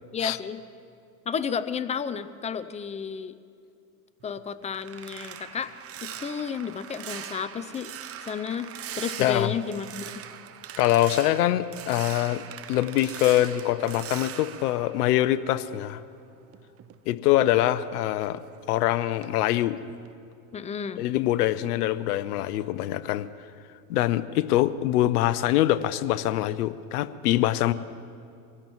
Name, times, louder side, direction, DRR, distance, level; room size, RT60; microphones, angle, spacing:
voice 1, 0.1-0.6 1.3-3.4 4.2-5.7 6.0-7.9 8.2-10.1 20.5-21.0, left 6 dB, 15° left, 13 dB, 0.4 m, -32 dB
sound 1, 4.2-15.8 16.2-18.8 19.2-19.5 19.9-20.1, right 10 dB, 30° right, 0.8 m, -41 dB
voice 2, 9.2-9.5 10.8-12.4 12.7-16.0 17.1-18.4 18.7-19.8 21.0-23.3 23.9-27.7, left 14 dB, 75° left, 14 dB, 0.8 m, -24 dB
24.5 x 16.0 x 3.1 m, 2.4 s
hypercardioid pair, 95°, 47 cm